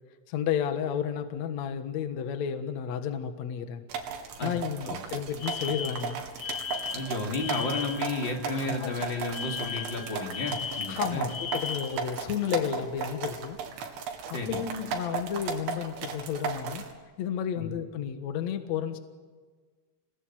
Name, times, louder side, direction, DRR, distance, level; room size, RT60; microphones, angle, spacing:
voice 1, 0.3-3.8 4.4-6.2 8.5-8.9 10.9-13.6 14.3-16.8 17.2-19.0, left 8 dB, 80° left, 7 dB, 1.6 m, -32 dB
sound 1, 3.9-16.9, right 6 dB, 70° right, 4.5 m, -36 dB
Alarm, 5.4-8.1 9.3-12.1, left 7 dB, 45° left, 2.5 m, -36 dB
Wind instrument woodwind instrument, 6.4-10.4, left 3 dB, 45° right, 9.2 m, -49 dB
voice 2, 6.9-11.3 14.3-14.6 17.6-17.7, left 2 dB, 25° left, 1 dB, 3.4 m, -32 dB
28.0 x 19.5 x 9.2 m, 1.5 s
omnidirectional pair, 5.7 m